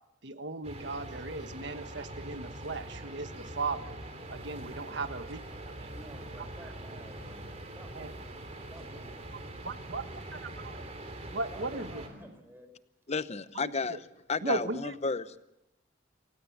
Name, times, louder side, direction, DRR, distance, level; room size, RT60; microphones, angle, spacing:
voice 1, 0.2-3.9 4.3-5.7 6.4-6.7 7.9-8.1 9.3-10.0 10.6-10.7 11.3-12.1 13.5-14.0 14.4-15.0, right 3 dB, 65° right, 9 dB, 1.4 m, -37 dB
sound 1, 0.6-12.1, right 1 dB, 35° right, 3.4 m, -43 dB
voice 2, 5.8-11.0 11.5-12.7, equal, 10° right, 7 dB, 4.3 m, -52 dB
voice 3, 13.1-14.0 14.3-15.4, left 4 dB, 35° left, 13 dB, 0.8 m, -32 dB
27.5 x 16.5 x 7.3 m, 0.91 s
head